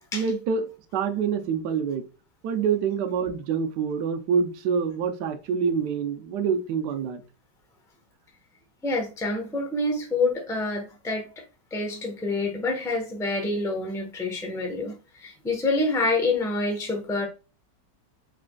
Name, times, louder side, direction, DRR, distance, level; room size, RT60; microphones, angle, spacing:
voice 1, 0.1-2.1 2.4-7.2, right 6 dB, 75° right, 1.3 m, -26 dB
voice 2, 8.8-11.3 11.7-17.3, left 2 dB, 5° left, 0.6 m, -27 dB
5.0 x 4.2 x 2.3 m
omnidirectional pair, 1.9 m